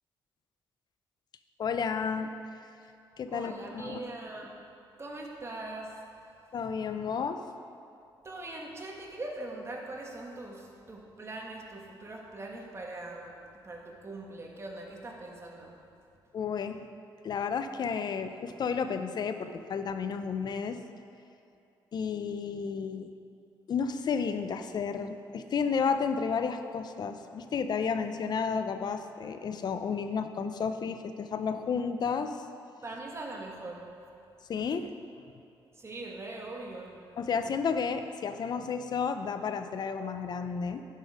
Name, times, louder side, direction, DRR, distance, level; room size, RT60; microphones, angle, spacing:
voice 1, 1.6-2.3 3.2-4.0 6.5-7.4 16.3-16.8 17.2-20.8 21.9-23.1 23.7-32.5 34.5-34.9 37.2-40.9, left 6 dB, 55° left, 9 dB, 0.6 m, -32 dB
voice 2, 3.3-4.6 5.0-5.9 8.2-13.3 13.6-15.7 32.8-33.8 35.8-37.0, right 2 dB, 30° right, 0 dB, 1.4 m, -41 dB
11.0 x 5.3 x 5.1 m, 2.6 s
cardioid pair, 75°, 9 cm